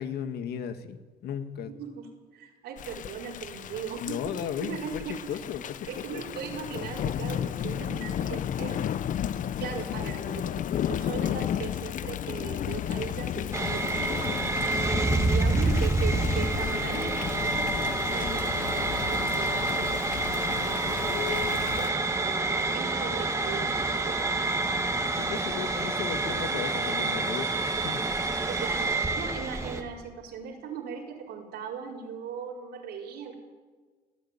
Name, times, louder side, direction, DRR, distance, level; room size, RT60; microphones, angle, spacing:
voice 1, 0.0-1.7 4.0-4.8 5.3-6.2 14.6-15.2 21.0-21.6 25.1-28.1, left 8 dB, 70° left, 9 dB, 1.7 m, -36 dB
voice 2, 1.7-4.2 4.6-5.1 5.9-8.8 9.6-14.4 15.0-20.0 20.6-24.8 25.1-25.5 28.5-28.9 29.2-33.3, right 7 dB, 80° right, -3 dB, 5.0 m, -39 dB
Thunder / Rain, 2.8-21.9, left 10 dB, 50° left, 0.6 m, -34 dB
sound 1, 13.5-29.8, right 2 dB, 15° right, 2.3 m, -28 dB
27.5 x 9.6 x 10.0 m, 1.4 s
cardioid pair, 110°, 17 cm